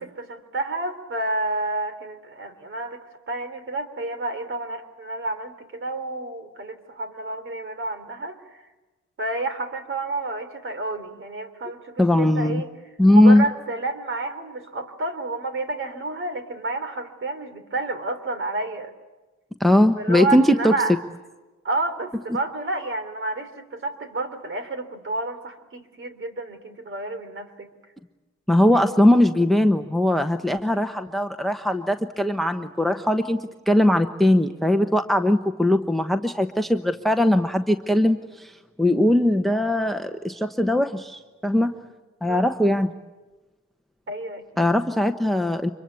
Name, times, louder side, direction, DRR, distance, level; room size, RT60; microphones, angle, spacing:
voice 1, 0.0-3.0 3.3-8.6 9.2-12.7 13.1-18.9 20.0-21.0 21.6-27.7 28.7-28.9 42.3-42.4 44.1-44.7, right 2 dB, 40° right, 10 dB, 3.3 m, -30 dB
voice 2, 12.0-12.6 13.0-13.4 19.6-20.7 28.5-38.5 38.8-41.7 42.2-42.9 44.6-45.7, left 1 dB, ahead, 8 dB, 1.1 m, -20 dB
26.0 x 23.0 x 8.4 m, 1.2 s
cardioid pair, 90°, 30 cm